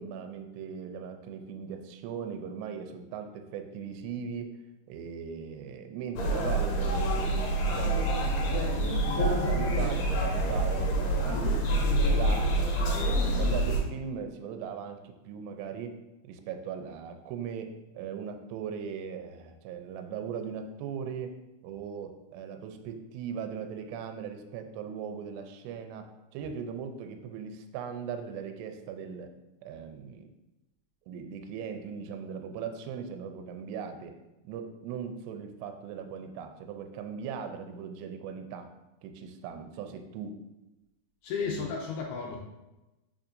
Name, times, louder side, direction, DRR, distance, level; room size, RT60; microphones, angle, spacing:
voice 1, 0.0-4.6 4.9-7.1 7.6-8.1 8.5-11.6 12.0-16.0 16.2-21.3 21.6-29.3 29.6-30.3 31.1-34.1 34.4-38.7 39.0-40.4 41.4-41.7, right 7 dB, 80° right, 6 dB, 2.6 m, -39 dB
sound 1, 6.2-13.8, right 1 dB, 65° left, 3.0 m, -27 dB
voice 2, 41.2-42.4, left 5 dB, 80° left, 0 dB, 2.3 m, -33 dB
7.2 x 5.8 x 2.6 m, 1.0 s
omnidirectional pair, 5.2 m